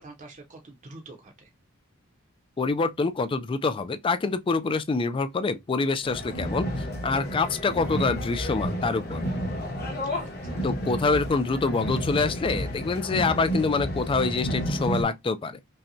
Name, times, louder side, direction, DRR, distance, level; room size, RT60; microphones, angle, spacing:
voice 1, 0.0-1.5 10.1-10.7, right 2 dB, 40° right, 0.7 m, -46 dB
voice 2, 2.6-9.2 10.6-15.6, left 4 dB, 25° left, 0.3 m, -26 dB
sound 1, 6.0-15.0, equal, 50° left, 1.3 m, -31 dB
5.4 x 2.2 x 2.6 m
head